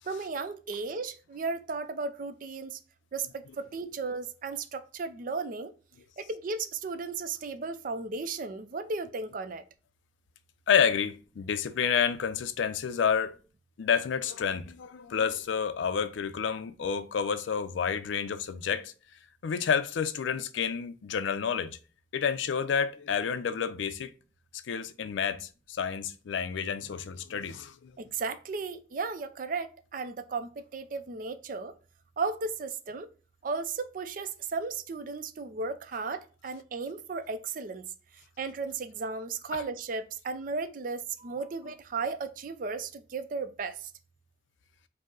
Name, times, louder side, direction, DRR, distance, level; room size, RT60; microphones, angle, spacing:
voice 1, 0.1-2.8 3.1-5.7 6.2-9.6 28.0-31.7 32.2-33.1 33.4-37.8 38.4-43.9, right 4 dB, 45° right, 0.4 m, -35 dB
voice 2, 10.7-13.4 13.8-18.9 19.4-21.8 22.1-24.1 24.7-27.9 39.5-39.6, left 7 dB, 90° left, 0.4 m, -29 dB
5.2 x 2.0 x 3.7 m
head